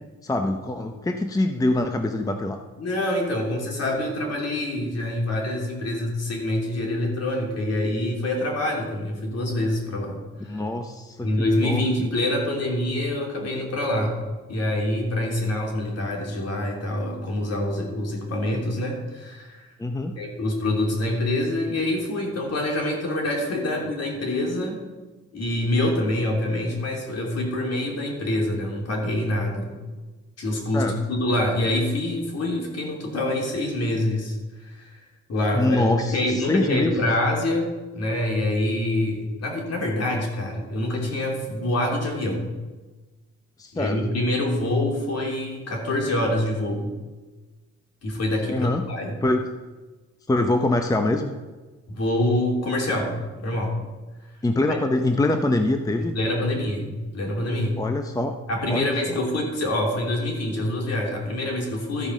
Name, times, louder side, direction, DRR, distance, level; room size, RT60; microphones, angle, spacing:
voice 1, 0.2-2.6 10.5-11.8 19.8-20.1 30.7-30.9 35.5-37.1 43.6-44.0 48.5-48.8 49.2-49.4 50.3-51.3 54.4-56.1 57.8-58.3 58.7-59.2, left 2 dB, 10° left, 6 dB, 0.7 m, -24 dB
voice 2, 2.8-10.2 10.4-10.6 11.2-14.2 14.5-19.7 20.2-24.8 25.3-29.8 30.4-42.5 43.7-46.9 48.0-49.2 51.9-53.8 54.7-54.8 56.0-57.8 58.5-62.1, left 1 dB, 55° left, 0 dB, 3.0 m, -26 dB
13.0 x 5.1 x 6.2 m, 1.2 s
cardioid pair, 90°, 30 cm